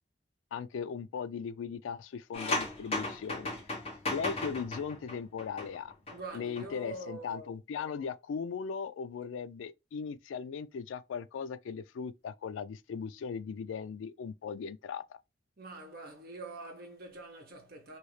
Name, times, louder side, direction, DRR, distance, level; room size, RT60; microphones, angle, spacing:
voice 1, 0.5-3.5 4.1-5.9 6.3-15.0, left 6 dB, 85° left, 0.3 m, -38 dB
sound 1, 2.3-6.2 6.4-6.7, left 2 dB, 30° left, 1.0 m, -36 dB
voice 2, 6.1-7.5 15.6-18.0, right 2 dB, 55° right, 1.0 m, -44 dB
3.1 x 2.7 x 3.1 m
head